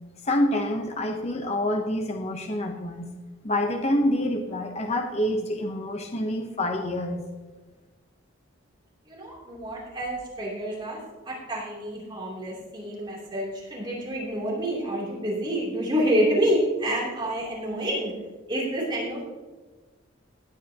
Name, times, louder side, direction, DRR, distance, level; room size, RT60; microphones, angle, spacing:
voice 1, 0.2-3.1 3.4-7.2, left 1 dB, 30° left, 3 dB, 0.8 m, -27 dB
voice 2, 9.1-11.0 11.2-18.1 18.5-19.3, equal, 25° right, -5 dB, 3.0 m, -28 dB
18.0 x 9.3 x 2.9 m, 1.2 s
head